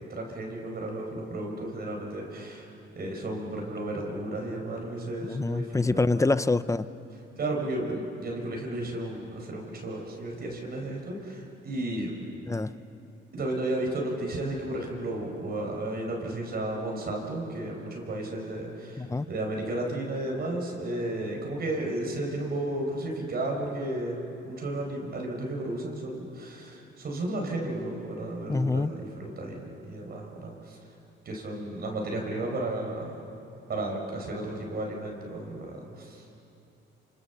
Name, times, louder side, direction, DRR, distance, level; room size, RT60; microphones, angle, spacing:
voice 1, 0.1-2.7 2.9-6.3 7.3-12.1 13.3-24.2 24.4-30.8 31.2-33.2 33.7-36.2, right 1 dB, 50° right, 0 dB, 5.1 m, -33 dB
voice 2, 5.2-6.9 12.5-12.7 19.0-19.3 28.5-28.9, left 3 dB, 15° left, 15 dB, 0.7 m, -26 dB
26.5 x 26.5 x 7.2 m, 2.8 s
cardioid pair, 90°, 20 cm